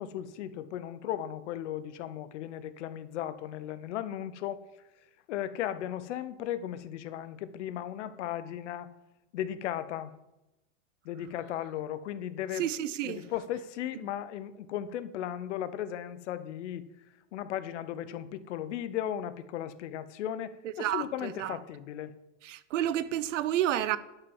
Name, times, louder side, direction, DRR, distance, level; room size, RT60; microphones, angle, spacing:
voice 1, 0.0-4.6 5.3-8.9 9.3-10.1 11.0-12.7 13.0-16.8 17.3-22.1, left 11 dB, 65° left, 1.0 m, -36 dB
voice 2, 12.6-13.2 20.8-21.6 22.4-24.0, right 12 dB, 75° right, 0.8 m, -30 dB
11.0 x 5.7 x 7.2 m
supercardioid pair, 145°, 38 cm